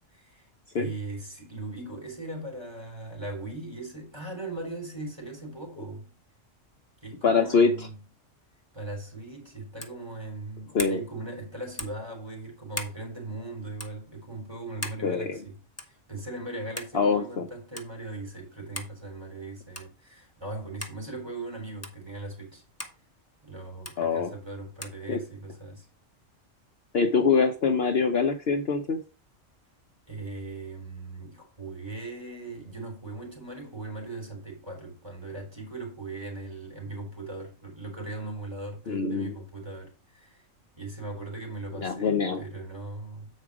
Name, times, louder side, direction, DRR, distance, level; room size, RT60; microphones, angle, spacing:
voice 1, 0.1-0.5 0.7-6.1 7.0-8.0 8.7-15.6 15.9-22.6 23.4-25.9 30.1-40.4 40.8-43.3, right 2 dB, 20° right, 3.6 m, -39 dB
voice 2, 7.2-7.9 10.7-11.0 15.0-15.3 16.9-17.5 24.0-24.3 25.1-25.2 26.9-29.0 38.9-39.4 41.8-42.4, left 5 dB, 55° left, 1.0 m, -24 dB
sound 1, 9.8-10.0 10.8-11.0 11.8-12.0 12.7-13.0 13.8-13.9 14.8-15.0 15.8-16.0 16.8-16.9 17.8-17.9 18.7-19.0 19.7-20.0 20.8-21.0 21.8-22.0 22.8-23.0 23.8-24.0 24.8-25.0, left 1 dB, 10° left, 1.1 m, -37 dB
8.5 x 4.9 x 4.8 m
omnidirectional pair, 1.4 m